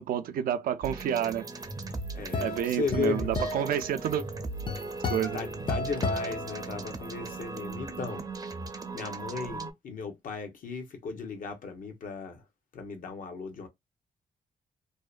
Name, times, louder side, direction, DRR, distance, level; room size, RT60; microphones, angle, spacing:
voice 1, 0.0-1.4 2.4-4.2 5.1-5.4, right 10 dB, 85° right, 0.4 m, -29 dB
sound 1, 0.8-9.7, right 3 dB, 25° right, 0.5 m, -38 dB
sound 2, 1.7-7.2, left 3 dB, 35° left, 0.5 m, -34 dB
voice 2, 2.1-3.3 5.3-8.2 8.9-12.4 12.7-13.7, left 5 dB, 70° left, 0.8 m, -35 dB
2.6 x 2.1 x 2.3 m
cardioid pair, 100°, 15 cm